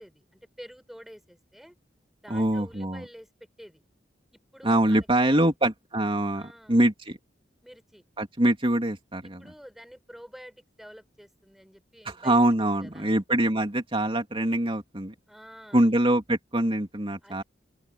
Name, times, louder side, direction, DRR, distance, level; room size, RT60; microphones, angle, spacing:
voice 1, 0.0-1.8 2.2-3.3 3.6-3.8 4.3-5.4 6.3-6.8 7.6-8.0 9.4-12.4 12.7-13.1 15.3-15.9 17.2-17.4, equal, ahead, 5.7 m, -48 dB
voice 2, 2.3-3.0 4.6-7.2 8.2-9.5 12.0-15.1 15.7-17.4, right 1 dB, 30° right, 2.9 m, -24 dB
open air
head